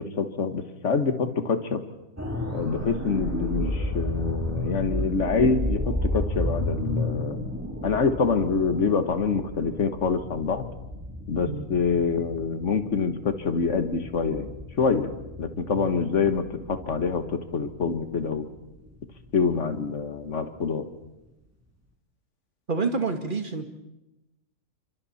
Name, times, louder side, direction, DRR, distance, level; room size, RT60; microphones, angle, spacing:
voice 1, 0.0-1.8 2.5-7.4 7.8-10.7 11.3-18.5 19.3-20.9, left 5 dB, 65° left, 9 dB, 1.9 m, -26 dB
sound 1, 2.2-20.0 20.4-20.6, left 1 dB, 10° right, 3.1 m, -33 dB
voice 2, 22.7-23.7, right 4 dB, 40° right, 6 dB, 2.0 m, -28 dB
30.0 x 25.5 x 4.3 m, 0.96 s
omnidirectional pair, 1.4 m